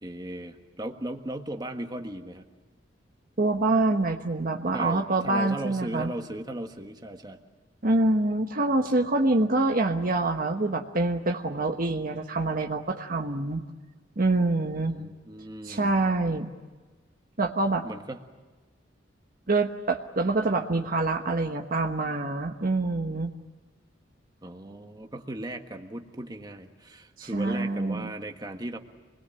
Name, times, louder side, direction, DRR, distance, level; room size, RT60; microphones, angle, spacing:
voice 1, 0.0-2.4 4.7-7.4 14.9-16.0 17.8-18.2 24.4-28.8, right 1 dB, 20° right, 5 dB, 1.5 m, -37 dB
voice 2, 3.4-6.1 7.8-13.6 14.2-15.0 15.6-16.5 17.4-17.8 19.5-23.3 27.2-28.1, right 2 dB, 45° right, 5 dB, 1.2 m, -26 dB
26.5 x 21.0 x 8.8 m, 1.3 s
head